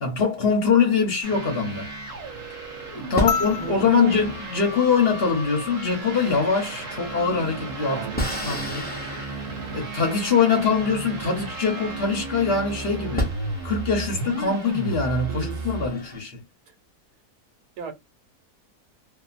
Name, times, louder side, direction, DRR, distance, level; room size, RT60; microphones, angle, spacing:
voice 1, 0.0-1.9 2.9-8.9 9.7-13.3 13.6-16.4, left 5 dB, 45° left, 1.0 m, -23 dB
sound 1, 1.2-15.9, right 3 dB, 35° right, 0.7 m, -34 dB
sound 2, 1.7-2.5 3.2-12.3 12.8-12.9 13.2-16.2, left 1 dB, 10° left, 0.5 m, -36 dB
voice 2, 3.1-4.2 7.9-8.8 15.3-15.7 16.7-16.8 17.8-17.9, right 6 dB, 80° right, 1.4 m, -35 dB
sound 3, 3.3-5.8 7.4-7.5, left 6 dB, 70° left, 0.7 m, -32 dB
2.7 x 2.6 x 2.4 m
omnidirectional pair, 1.7 m